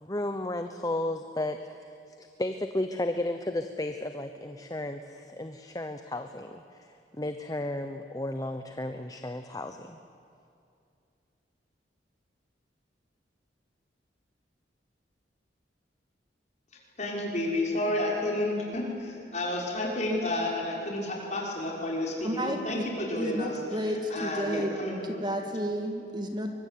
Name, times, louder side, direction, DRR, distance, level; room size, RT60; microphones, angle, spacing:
voice 1, 0.0-10.0, left 1 dB, 20° left, 7 dB, 0.9 m, -34 dB
voice 2, 17.0-25.4, left 1 dB, 40° left, -2 dB, 6.0 m, -31 dB
voice 3, 22.2-22.8 23.2-24.7 25.0-26.5, equal, 25° right, 4 dB, 1.9 m, -32 dB
24.0 x 22.5 x 9.4 m, 2.5 s
head